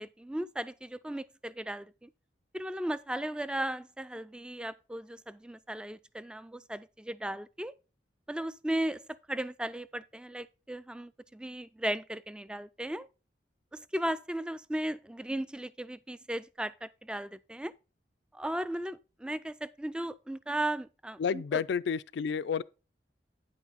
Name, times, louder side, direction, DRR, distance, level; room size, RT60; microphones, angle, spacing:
voice 1, 0.0-2.1 2.5-7.7 8.3-13.1 13.7-17.7 18.3-21.6, right 1 dB, 5° right, 0.3 m, -36 dB
voice 2, 21.2-22.6, left 6 dB, 75° left, 0.3 m, -30 dB
9.1 x 5.9 x 4.0 m
head